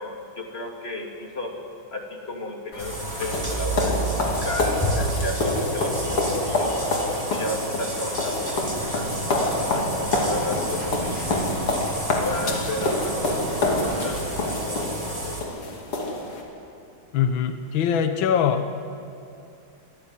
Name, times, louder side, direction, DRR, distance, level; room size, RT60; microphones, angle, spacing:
voice 1, 0.0-1.5 1.9-6.7 7.3-9.3 9.7-11.5 12.2-13.4 13.8-14.9 15.2-15.6, left 2 dB, 25° left, 1 dB, 3.0 m, -33 dB
sound 1, 2.7-16.4, left 2 dB, 90° left, 3.7 m, -27 dB
sound 2, 2.8-15.4, right 1 dB, 15° right, 3.4 m, -31 dB
sound 3, 8.5-14.2, right 3 dB, 85° right, 2.7 m, -37 dB
voice 2, 17.1-18.7, left 7 dB, 65° left, 8 dB, 1.8 m, -22 dB
26.0 x 15.5 x 9.9 m, 2.5 s
omnidirectional pair, 2.4 m